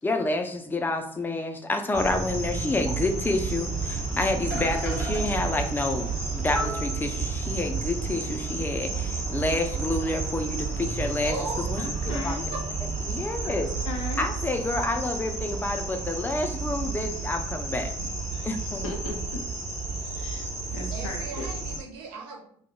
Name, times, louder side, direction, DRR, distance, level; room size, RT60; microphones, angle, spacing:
voice 1, 0.0-6.1 6.3-11.4 11.7-12.4 13.0-13.7 14.2-18.1 18.4-18.9, left 2 dB, 15° left, 5 dB, 0.4 m, -29 dB
sound 1, 1.9-21.8, right 4 dB, 50° right, 1.0 m, -31 dB
sound 2, 2.4-2.5 2.9-3.0 4.1-4.2 4.5-5.2 6.1-6.2 6.5-7.2, equal, 90° right, 1.2 m, -33 dB
voice 2, 11.2-12.6 20.9-22.6, right 3 dB, 65° right, 1 dB, 0.5 m, -38 dB
voice 3, 11.8-12.5 13.4-14.3 18.3-19.4 20.0-21.5, left 3 dB, 80° left, 1 dB, 0.4 m, -37 dB
2.2 x 2.0 x 3.1 m, 0.62 s
figure-of-eight pair, 45°, 16 cm